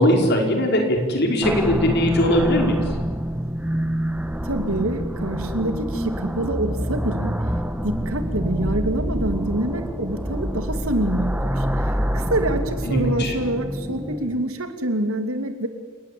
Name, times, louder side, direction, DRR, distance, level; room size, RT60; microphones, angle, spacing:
voice 1, 0.0-2.8 12.8-13.3, left 1 dB, 50° left, 2 dB, 5.3 m, -20 dB
sound 1, 1.4-14.5, equal, 5° right, 1.3 m, -26 dB
voice 2, 4.4-7.4 7.8-11.8 12.1-15.7, right 1 dB, 85° right, 7 dB, 2.9 m, -26 dB
29.0 x 20.0 x 8.8 m, 1.4 s
head